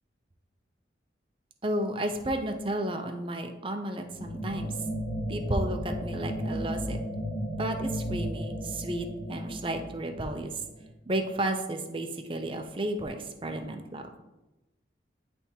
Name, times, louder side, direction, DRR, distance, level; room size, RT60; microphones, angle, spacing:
voice 1, 1.6-4.7 5.3-7.0 7.6-10.5 11.1-14.0, right 1 dB, 30° right, 6 dB, 0.5 m, -32 dB
sound 1, 4.1-10.9, equal, 55° left, 1.6 m, -34 dB
10.0 x 3.4 x 2.9 m, 1.0 s
head